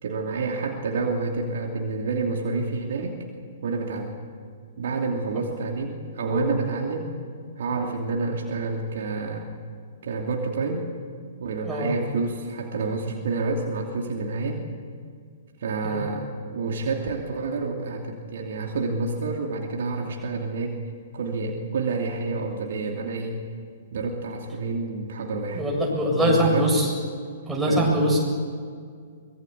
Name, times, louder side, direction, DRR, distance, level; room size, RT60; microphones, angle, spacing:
voice 1, 0.0-3.2 3.6-4.2 4.8-7.1 7.6-9.5 10.0-10.9 11.4-14.6 15.6-20.8 21.1-23.4 23.9-25.6 26.1-26.7 27.7-27.9, right 3 dB, 55° right, 1 dB, 2.8 m, -28 dB
voice 2, 11.6-11.9 15.8-16.0 25.5-26.9 27.5-28.2, equal, 5° right, -3 dB, 7.8 m, -22 dB
24.5 x 21.0 x 8.2 m, 2.1 s
figure-of-eight pair, 115°, 0 cm